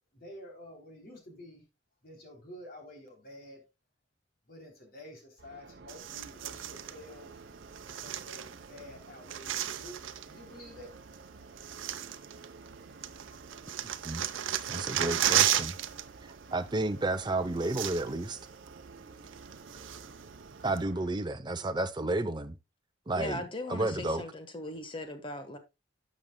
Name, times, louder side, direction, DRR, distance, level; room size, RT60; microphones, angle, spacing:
voice 1, 0.1-1.6 2.0-3.6 4.5-7.4 7.9-10.9, left 1 dB, 50° left, 3.0 m, -49 dB
sound 1, 5.4-21.2, right 3 dB, 55° right, 0.8 m, -51 dB
sound 2, 5.9-7.0 7.7-8.8 9.1-10.3 11.1-11.2 11.6-12.7 13.0-16.0 16.3-16.5 17.3-17.4 17.6-18.3 18.7-18.8 19.3-20.2 20.8-20.9, right 11 dB, 90° right, 0.6 m, -33 dB
voice 2, 14.7-15.8 16.5-18.4 20.6-22.6 23.1-23.4 23.7-24.2, right 2 dB, 25° right, 0.6 m, -31 dB
voice 3, 23.2-25.6, left 1 dB, 25° left, 1.2 m, -39 dB
11.5 x 7.4 x 2.2 m
head